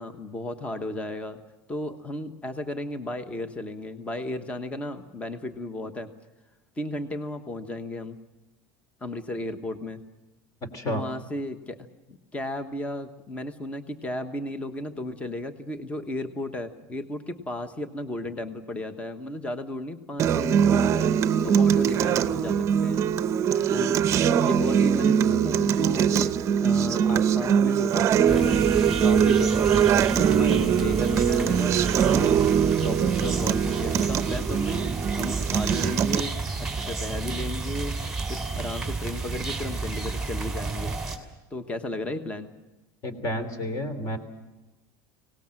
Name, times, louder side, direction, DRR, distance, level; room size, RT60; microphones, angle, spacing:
voice 1, 0.0-1.4 1.7-6.1 6.8-8.2 9.0-10.0 10.9-21.1 21.4-23.0 23.7-24.0 24.4-34.8 35.2-36.3 36.7-38.0 38.3-40.9 41.5-42.5, left 1 dB, 15° left, 9 dB, 1.2 m, -34 dB
voice 2, 10.6-11.0 43.0-44.2, equal, 35° left, 11 dB, 3.1 m, -30 dB
Acoustic guitar, 20.2-36.2, right 8 dB, 30° right, 0.7 m, -22 dB
sound 1, 28.3-41.2, right 3 dB, 5° right, 2.9 m, -31 dB
24.5 x 18.5 x 7.6 m, 1.1 s
cardioid pair, 155°, 10 cm